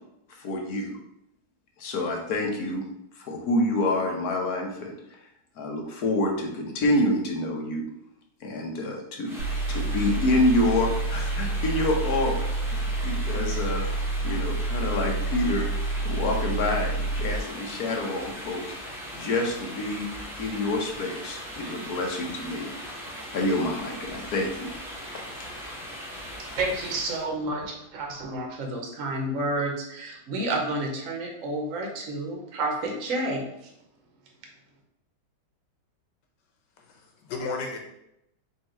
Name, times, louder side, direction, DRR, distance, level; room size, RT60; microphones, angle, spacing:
voice 1, 0.4-1.0 1.8-2.8 3.1-5.2 5.6-7.8 8.4-9.3 9.7-13.8 14.2-15.6 16.0-20.1 20.4-22.7 23.3-24.8 25.1-25.2, left 1 dB, 65° left, 1 dB, 1.3 m, -27 dB
sound 1, 9.2-27.3, equal, ahead, 0.8 m, -39 dB
sound 2, 9.4-17.4, right 2 dB, 75° right, 1.3 m, -28 dB
voice 2, 26.4-33.7, right 2 dB, 55° right, 1 dB, 1.1 m, -30 dB
voice 3, 36.8-37.8, left 3 dB, 90° left, 2 dB, 1.5 m, -34 dB
4.3 x 2.8 x 4.4 m, 0.81 s
omnidirectional pair, 1.9 m